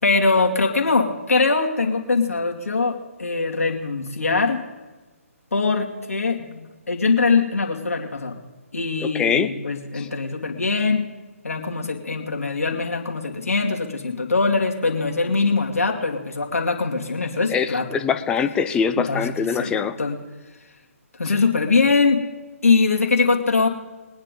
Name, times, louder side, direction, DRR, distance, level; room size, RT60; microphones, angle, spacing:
voice 1, 0.0-4.6 5.5-8.4 8.7-11.1 11.4-17.9 19.0-20.2 21.2-22.2 22.6-23.7, left 4 dB, 70° left, 1 dB, 2.3 m, -22 dB
voice 2, 9.0-9.5 9.9-10.1 17.5-20.0, left 6 dB, 10° left, 8 dB, 0.7 m, -23 dB
22.0 x 9.6 x 3.9 m, 1.2 s
figure-of-eight pair, 140°, 8 cm